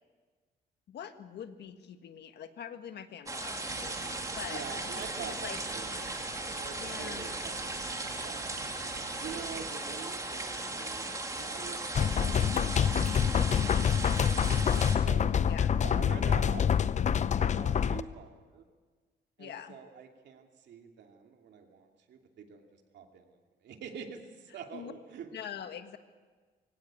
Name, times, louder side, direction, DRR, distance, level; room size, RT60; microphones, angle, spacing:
voice 1, 0.9-5.6 6.8-7.3 15.4-15.8 19.4-19.8 24.7-24.9 25.3-26.0, left 9 dB, 70° left, 8 dB, 1.6 m, -44 dB
sound 1, 3.3-15.0, right 2 dB, 20° right, 2.5 m, -37 dB
sound 2, 3.7-9.7, right 7 dB, 60° right, 1.3 m, -49 dB
voice 2, 4.5-8.5 9.2-15.3 15.8-16.7 17.4-18.6 19.4-23.3 23.6-25.3, right 6 dB, 75° right, 3 dB, 2.7 m, -46 dB
sound 3, 11.9-18.0, left 8 dB, 40° left, 0.7 m, -26 dB
23.5 x 17.0 x 8.6 m, 1.4 s
cardioid pair, 115°, 18 cm